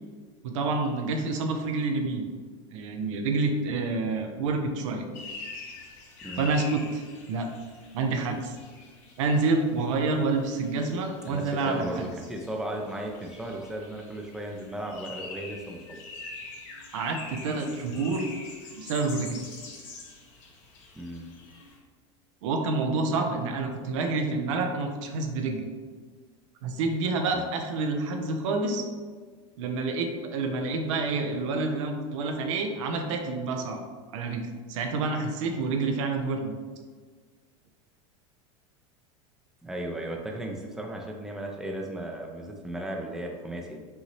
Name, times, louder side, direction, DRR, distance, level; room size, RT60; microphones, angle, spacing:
voice 1, 0.4-2.3 2.7-5.1 6.4-7.0 7.3-7.5 7.9-8.6 9.2-12.1 16.9-18.3 18.7-19.4 22.4-25.7 26.6-28.9 29.6-33.8 34.1-36.5, right 3 dB, 70° right, 4 dB, 0.7 m, -28 dB
sound 1, 5.1-21.8, left 3 dB, 55° left, 1.2 m, -45 dB
voice 2, 11.3-16.0 21.0-21.3 27.3-27.5 39.6-43.8, right 1 dB, 5° right, 0 dB, 0.6 m, -36 dB
5.5 x 2.8 x 3.1 m, 1.5 s
hypercardioid pair, 105°, 17 cm